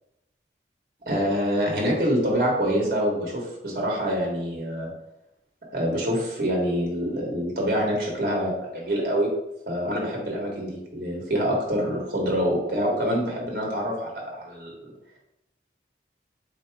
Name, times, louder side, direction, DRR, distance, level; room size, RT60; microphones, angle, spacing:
voice 1, 1.0-4.9 5.7-9.3 9.7-14.7, equal, 50° right, -2 dB, 1.2 m, -26 dB
3.7 x 2.8 x 4.6 m, 0.86 s
head